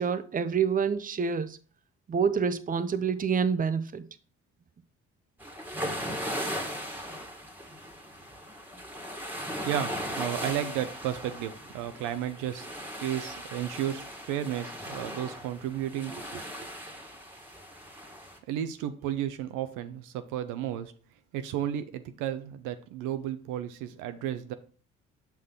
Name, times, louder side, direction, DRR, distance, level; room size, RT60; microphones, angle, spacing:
voice 1, 0.0-1.6 2.1-4.1, right 6 dB, 25° right, 0.7 m, -27 dB
sound 1, 5.4-18.4, equal, 5° right, 1.6 m, -38 dB
voice 2, 9.7-12.7 13.0-16.4 18.5-20.9 21.3-24.5, right 11 dB, 80° right, 0.7 m, -33 dB
6.3 x 5.8 x 3.8 m
supercardioid pair, 60°, 31 cm